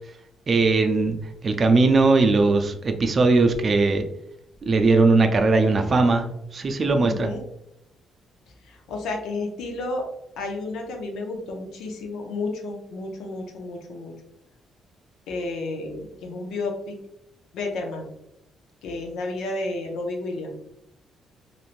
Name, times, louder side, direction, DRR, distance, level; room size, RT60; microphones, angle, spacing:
voice 1, 0.5-1.2 1.4-4.0 4.7-6.2 6.5-7.3, right 3 dB, 40° right, 6 dB, 0.4 m, -19 dB
voice 2, 7.0-7.4 8.6-10.1 10.4-14.1 15.3-17.0 17.5-18.1 18.8-20.6, left 2 dB, 85° left, 2 dB, 0.6 m, -31 dB
3.1 x 2.6 x 2.5 m, 0.81 s
cardioid pair, 90°, 0 cm